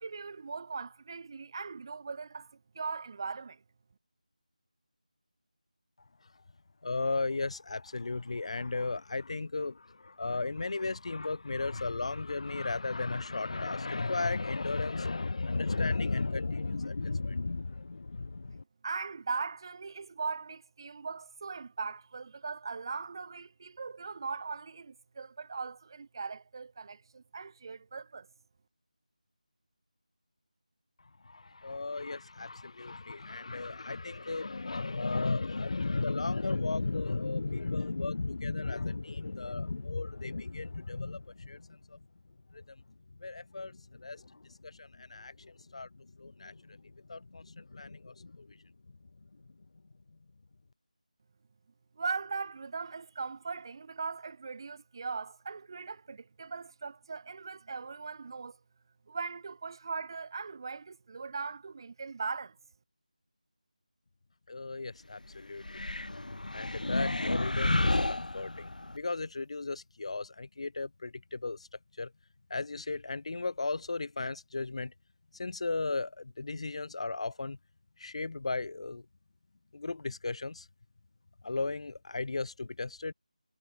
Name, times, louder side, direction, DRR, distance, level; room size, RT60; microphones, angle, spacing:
voice 1, 0.0-3.6 18.8-28.3 52.0-58.6 59.1-62.6, right 4 dB, 35° right, 1.2 m, -39 dB
voice 2, 6.8-18.6 31.2-42.0 42.5-42.8 43.2-48.7 49.4-49.5 64.5-66.0 66.5-71.7 72.0-72.1 72.5-74.9 75.3-77.6 78.0-79.0 79.7-80.7 81.4-83.1, left 3 dB, 50° left, 1.3 m, -35 dB
sound 1, 65.6-69.0, left 2 dB, 85° left, 1.0 m, -31 dB
figure-of-eight pair, 170°, 4 cm